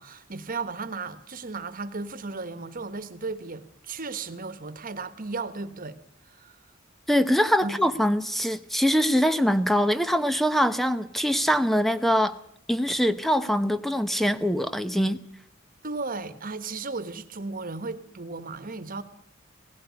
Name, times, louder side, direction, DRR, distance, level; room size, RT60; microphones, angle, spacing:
voice 1, 0.0-6.0 6.3-6.6 7.6-7.8 15.8-19.0, right 3 dB, 45° right, 1.4 m, -35 dB
voice 2, 7.1-12.4 12.7-15.2, equal, ahead, 0.8 m, -23 dB
17.5 x 16.0 x 9.6 m
head